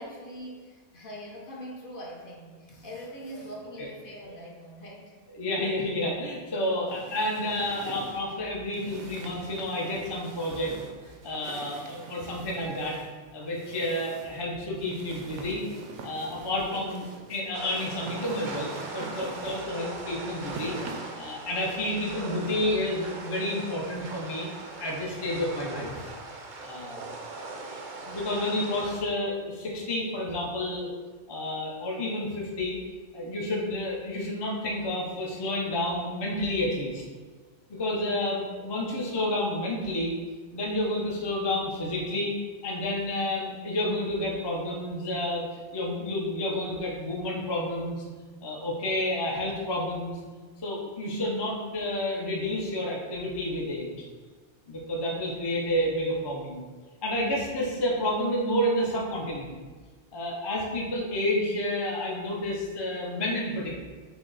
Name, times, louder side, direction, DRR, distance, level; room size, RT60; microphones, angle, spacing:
voice 1, 0.0-5.2 6.7-6.8, equal, 50° left, -3 dB, 0.9 m, -42 dB
voice 2, 5.3-10.8 11.2-13.0 13.3-15.6 16.0-20.8 21.2-24.5 24.8-26.1 26.6-27.1 28.0-30.9 31.3-32.8 33.1-37.0 37.7-40.1 40.5-42.3 42.6-48.0 48.4-50.2 50.6-54.0 54.7-56.7 57.0-59.6 60.1-63.8, left 1 dB, 30° left, -3 dB, 0.5 m, -30 dB
sound 1, 6.9-21.2, right 3 dB, 80° right, 0.9 m, -45 dB
sound 2, 17.5-29.0, right 3 dB, 55° right, 0.6 m, -40 dB
5.8 x 2.0 x 3.9 m, 1.4 s
omnidirectional pair, 1.2 m